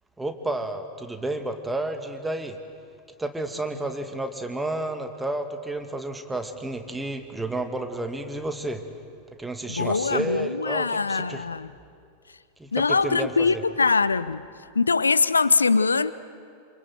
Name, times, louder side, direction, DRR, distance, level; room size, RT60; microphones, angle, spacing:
voice 1, 0.2-2.6 3.2-8.9 9.4-11.5 12.6-13.6, right 2 dB, 5° right, 2.3 m, -31 dB
voice 2, 9.7-11.7 12.7-14.4 14.7-16.1, left 4 dB, 75° left, 0.6 m, -22 dB
28.0 x 27.0 x 7.9 m
figure-of-eight pair, 90°, 0 cm